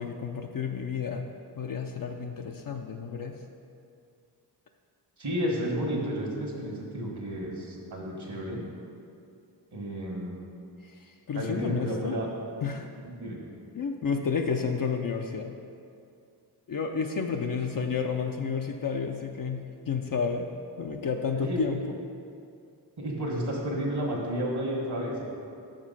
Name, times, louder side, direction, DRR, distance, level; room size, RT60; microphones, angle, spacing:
voice 1, 0.0-3.3 10.8-12.2 12.6-12.9 13.7-15.5 16.7-20.5 20.8-21.9, left 5 dB, 50° left, 3 dB, 0.5 m, -31 dB
voice 2, 5.2-8.6 9.7-10.4 11.3-12.3 13.0-13.4 21.3-21.7 23.0-25.2, equal, 60° right, -2 dB, 1.5 m, -32 dB
5.8 x 5.2 x 5.5 m, 2.4 s
cardioid pair, 50°, 43 cm